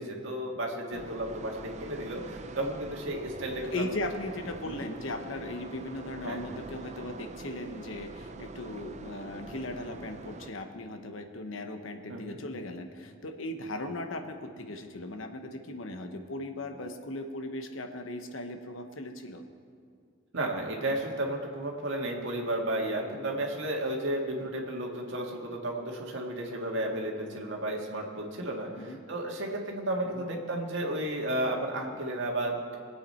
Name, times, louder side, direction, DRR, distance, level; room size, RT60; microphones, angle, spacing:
voice 1, 0.0-3.9 4.7-4.8 6.2-6.5 9.5-9.7 12.1-12.4 20.3-32.7, right 1 dB, 65° right, 0 dB, 1.9 m, -33 dB
sound 1, 0.9-10.5, right 3 dB, 35° right, 0.6 m, -44 dB
voice 2, 3.6-19.4 24.4-24.6 28.8-29.0 30.0-30.2, left 1 dB, 75° left, 6 dB, 1.1 m, -38 dB
21.5 x 8.5 x 4.4 m, 2.3 s
head